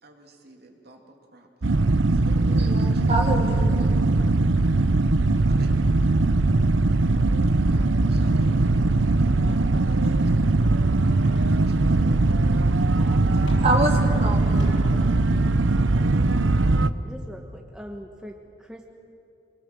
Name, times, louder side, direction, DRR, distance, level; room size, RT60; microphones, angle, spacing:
voice 1, 0.0-3.1 5.4-6.1 7.6-10.1 11.5-13.7, right 1 dB, 55° right, 2 dB, 2.8 m, -48 dB
sound 1, 1.6-16.9, right 2 dB, 75° right, 0.8 m, -20 dB
voice 2, 2.5-3.9 13.3-14.6, right 1 dB, 35° right, 0 dB, 3.5 m, -27 dB
sound 2, 5.0-6.5 7.1-7.3 7.8-8.7 9.1-9.2 9.5-10.2 11.2-12.0 12.4-14.0 14.5-15.3, equal, 75° left, 7.4 m, -46 dB
voice 3, 12.8-13.2 14.2-14.7 17.0-18.8, equal, 5° right, 1 dB, 1.3 m, -41 dB
27.5 x 20.0 x 7.8 m, 2.6 s
head